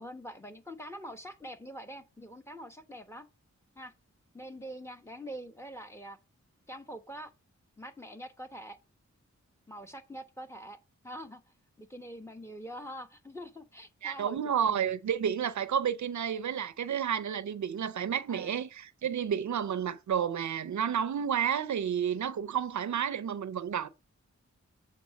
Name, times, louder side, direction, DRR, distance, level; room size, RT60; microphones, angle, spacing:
voice 1, 0.0-3.3 3.8-3.9 4.3-6.2 6.7-7.3 7.8-8.8 9.7-10.8 11.0-11.4 11.8-14.9 18.3-18.6, equal, 10° left, 1.1 m, -44 dB
voice 2, 14.0-23.9, right 8 dB, 75° right, 0.6 m, -31 dB
7.4 x 3.7 x 5.9 m
cardioid pair, 55°, 29 cm